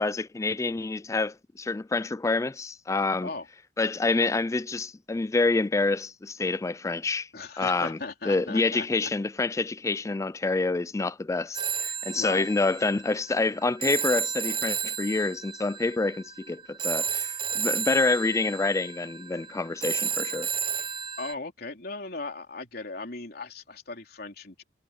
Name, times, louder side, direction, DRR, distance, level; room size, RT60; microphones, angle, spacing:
voice 1, 0.0-3.3 3.8-7.3 7.6-8.0 8.3-20.5 20.8-20.9, left 3 dB, 15° left, 0.3 m, -27 dB
voice 2, 7.3-9.1 12.1-12.5 21.2-24.6, left 3 dB, 60° left, 3.6 m, -37 dB
Telephone, 11.5-21.3, right 7 dB, 30° right, 0.9 m, -32 dB
head